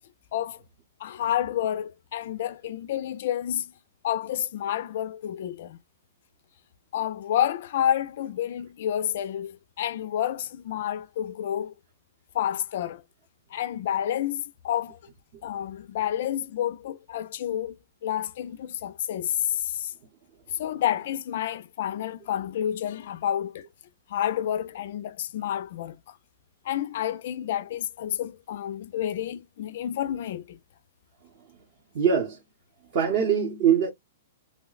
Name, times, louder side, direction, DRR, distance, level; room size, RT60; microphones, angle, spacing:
voice 1, 0.3-0.6 1.0-3.7 4.0-5.8 6.9-11.7 12.3-13.0 13.5-15.0 15.4-17.8 18.0-19.9 20.6-23.7 24.1-26.2 26.6-30.6, left 11 dB, 40° left, 0.3 m, -29 dB
voice 2, 31.9-32.4 32.9-33.9, right 8 dB, 30° right, 0.7 m, -22 dB
3.1 x 2.0 x 3.8 m
hypercardioid pair, 180°, 0 cm